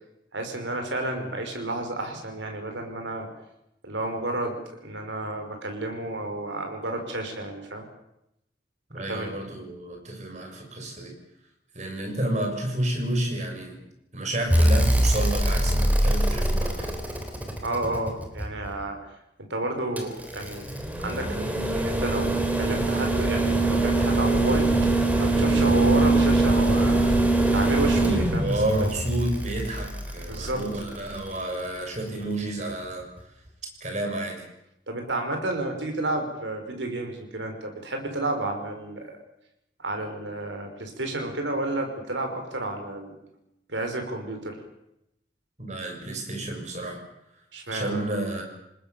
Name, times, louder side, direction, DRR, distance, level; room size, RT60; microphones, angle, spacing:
voice 1, 0.3-3.3 3.8-7.8 8.9-9.3 17.6-19.0 19.4-20.7 21.0-24.7 25.2-27.1 27.5-28.5 30.3-30.6 34.9-39.1 39.8-43.2 43.7-44.6 47.5-48.1, right 2 dB, 85° right, 4 dB, 5.6 m, -31 dB
voice 2, 8.9-11.2 11.7-13.8 14.1-16.9 28.4-33.1 33.8-34.5 45.6-47.0 47.7-48.4, right 1 dB, 40° right, 3 dB, 6.6 m, -30 dB
sound 1, 14.5-18.7 20.0-31.2 32.7-32.8, right 2 dB, 10° right, 3.5 m, -23 dB
28.0 x 20.0 x 7.0 m, 0.83 s
head